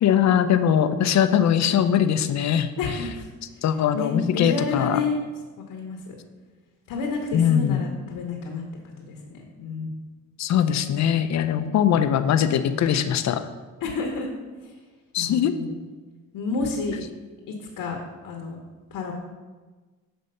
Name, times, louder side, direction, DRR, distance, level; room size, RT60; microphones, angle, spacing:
voice 1, 0.0-2.7 3.6-5.0 7.3-7.8 10.4-13.4 15.1-15.5, left 9 dB, 50° left, 10 dB, 0.5 m, -21 dB
voice 2, 2.8-3.3 3.9-5.2 5.7-6.1 6.9-9.9 11.5-11.8 13.8-14.3 14.6-14.7 15.2-15.7 16.3-17.0 17.5-18.0 18.2-18.6 18.9-19.1, left 4 dB, 70° left, 1 dB, 1.0 m, -30 dB
6.5 x 3.4 x 5.4 m, 1.3 s
cardioid pair, 80°, 35 cm